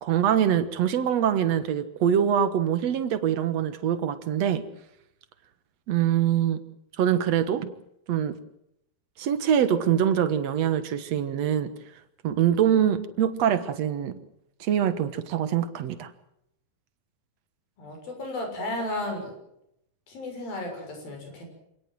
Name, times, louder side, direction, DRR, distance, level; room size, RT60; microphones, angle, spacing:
voice 1, 0.0-4.7 5.9-6.6 7.0-7.7 8.1-8.4 9.2-11.7 12.2-14.1 14.6-16.1, right 9 dB, 55° right, 12 dB, 2.1 m, -24 dB
voice 2, 17.8-19.3 20.1-21.5, left 1 dB, 70° left, 3 dB, 8.3 m, -33 dB
27.5 x 18.0 x 7.7 m, 0.79 s
omnidirectional pair, 4.3 m